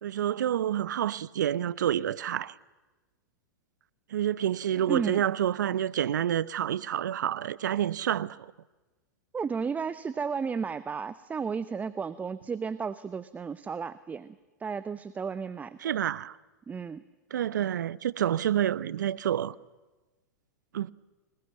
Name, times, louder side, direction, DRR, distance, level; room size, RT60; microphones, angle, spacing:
voice 1, 0.0-2.5 4.1-8.5 15.8-16.3 17.3-19.5 20.7-20.9, right 10 dB, 70° right, 0.8 m, -28 dB
voice 2, 4.9-5.2 9.3-14.3 14.6-15.8 16.7-17.0, right 5 dB, 15° right, 0.8 m, -33 dB
26.5 x 21.0 x 9.2 m
hypercardioid pair, 105°, 10 cm